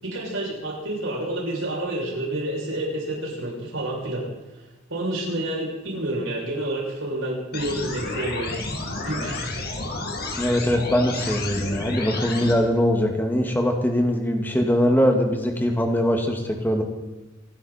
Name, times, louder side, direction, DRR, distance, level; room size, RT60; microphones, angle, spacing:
voice 1, 0.0-4.2 4.9-8.6 9.0-9.5, right 1 dB, 75° right, -4 dB, 7.1 m, -29 dB
sound 1, 7.5-12.5, left 2 dB, 50° left, 2.5 m, -31 dB
voice 2, 10.4-16.8, equal, 10° left, 3 dB, 2.1 m, -22 dB
25.5 x 12.0 x 4.4 m, 1.1 s
head